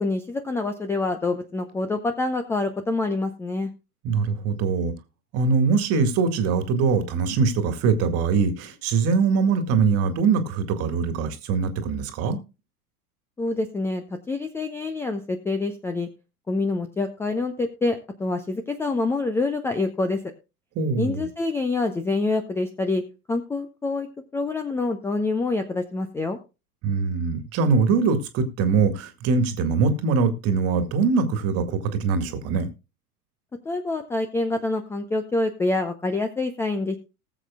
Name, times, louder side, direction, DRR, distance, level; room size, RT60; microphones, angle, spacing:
voice 1, 0.0-3.7 13.4-16.1 16.5-20.2 21.0-23.0 23.3-24.1 24.3-26.4 33.7-37.0, left 3 dB, 5° left, 0.6 m, -26 dB
voice 2, 4.0-4.9 5.3-12.4 20.8-21.3 26.8-32.7, right 5 dB, 30° right, 1.9 m, -22 dB
19.5 x 7.5 x 2.3 m
figure-of-eight pair, 95°, 45 cm